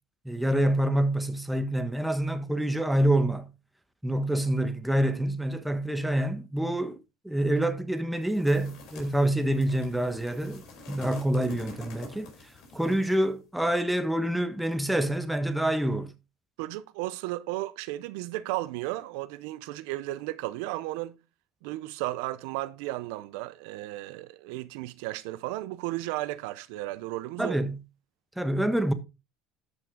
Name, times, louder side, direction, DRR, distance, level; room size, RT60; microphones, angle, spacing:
voice 1, 0.2-3.5 4.0-7.0 7.2-12.3 12.7-16.1 27.4-27.8 28.4-28.9, right 1 dB, 5° right, 1.4 m, -26 dB
sound 1, 8.2-13.3, left 2 dB, 60° left, 4.8 m, -47 dB
voice 2, 16.6-21.2 21.6-27.6, right 17 dB, 80° right, 0.7 m, -34 dB
13.0 x 6.1 x 3.7 m
supercardioid pair, 100°, 0 cm